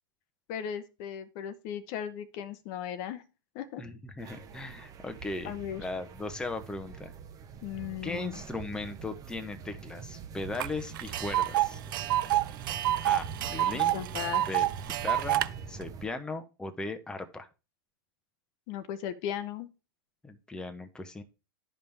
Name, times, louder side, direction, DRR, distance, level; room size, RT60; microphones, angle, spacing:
voice 1, 0.5-3.2 3.5-3.8 5.4-5.9 7.6-8.4 13.9-14.4 18.7-19.7, left 9 dB, 50° left, 12 dB, 0.8 m, -37 dB
voice 2, 3.8-7.1 8.0-11.8 13.0-13.9 14.4-14.7 15.0-17.5 20.2-21.2, left 2 dB, 5° left, 7 dB, 0.9 m, -38 dB
sound 1, 4.2-16.1, right 6 dB, 30° right, 1.0 m, -44 dB
Tick, 10.6-10.7 11.0-15.5, right 14 dB, 65° right, 0.5 m, -28 dB
11.0 x 5.3 x 3.4 m, 0.30 s
hypercardioid pair, 110°, 12 cm